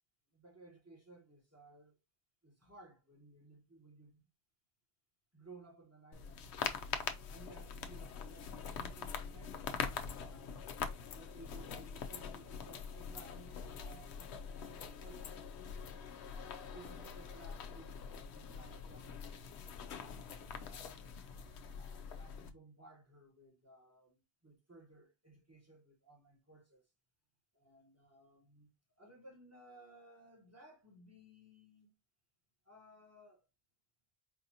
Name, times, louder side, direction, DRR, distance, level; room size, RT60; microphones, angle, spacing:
voice 1, 0.3-2.0 2.4-4.3 5.3-6.5 7.3-10.6 11.1-15.5 16.3-18.0 18.3-21.1 21.7-26.9 27.5-28.7 29.0-31.9 32.6-33.5, right 2 dB, 15° right, 1.1 m, -59 dB
sound 1, 6.1-22.5, left 6 dB, 90° left, 0.9 m, -44 dB
4.6 x 2.6 x 2.7 m
omnidirectional pair, 1.1 m